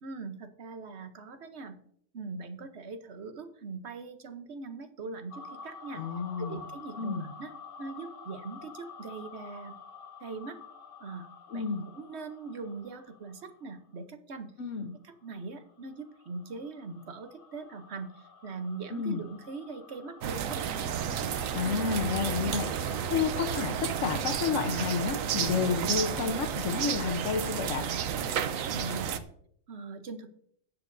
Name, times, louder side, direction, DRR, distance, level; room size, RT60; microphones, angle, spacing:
voice 1, 0.0-1.8 2.1-6.0 6.4-7.5 7.8-9.8 10.2-10.6 11.0-14.5 15.0-20.8 28.7-29.2 29.7-30.3, right 4 dB, 60° right, 8 dB, 1.1 m, -41 dB
sound 1, 5.3-13.9 15.0-23.7, left 5 dB, 45° left, 0.9 m, -50 dB
voice 2, 5.9-6.6 7.0-7.3 11.5-11.8 14.6-14.9 18.9-19.2 21.5-27.9, left 6 dB, 70° left, 4 dB, 1.2 m, -31 dB
sound 2, 20.2-29.2, right 8 dB, 85° right, 1.1 m, -32 dB
18.5 x 7.6 x 2.6 m, 0.65 s
omnidirectional pair, 1.4 m